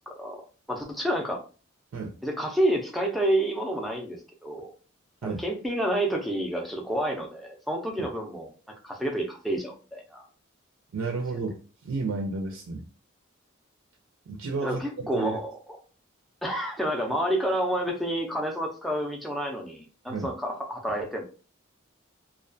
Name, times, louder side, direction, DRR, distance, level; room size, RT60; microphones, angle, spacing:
voice 1, 0.1-0.4 0.7-1.4 2.2-4.7 5.2-8.5 8.8-10.2 14.6-15.5 16.4-21.2, right 1 dB, ahead, 0 dB, 0.4 m, -29 dB
voice 2, 10.9-12.9 14.3-15.4 20.1-20.3, right 3 dB, 75° right, 2 dB, 0.4 m, -32 dB
2.3 x 2.2 x 2.5 m, 0.36 s
head